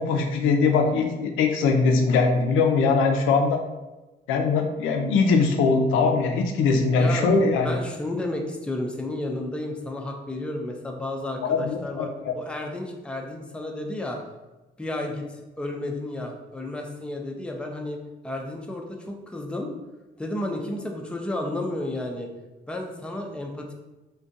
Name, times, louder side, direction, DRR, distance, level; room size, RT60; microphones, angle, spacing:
voice 1, 0.0-3.6 4.3-7.7 11.4-12.3, left 4 dB, 90° left, 4 dB, 0.4 m, -21 dB
voice 2, 7.0-14.2 14.8-18.0 18.2-19.7 20.2-22.3 22.7-23.7, left 1 dB, 5° left, 1 dB, 0.3 m, -32 dB
2.5 x 2.2 x 2.6 m, 1.1 s
cardioid pair, 90°, 20 cm